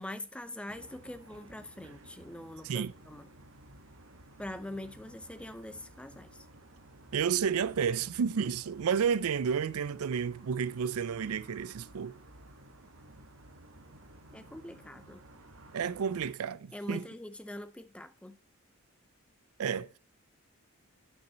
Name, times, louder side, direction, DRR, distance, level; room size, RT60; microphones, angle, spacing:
voice 1, 0.0-3.3 4.4-6.3 14.3-15.2 16.7-18.4, left 1 dB, 5° left, 0.4 m, -43 dB
sound 1, 0.7-16.3, right 1 dB, 65° right, 1.2 m, -55 dB
voice 2, 7.1-12.2 15.7-17.0 19.6-19.9, right 7 dB, 85° right, 0.4 m, -31 dB
8.9 x 6.3 x 4.2 m
head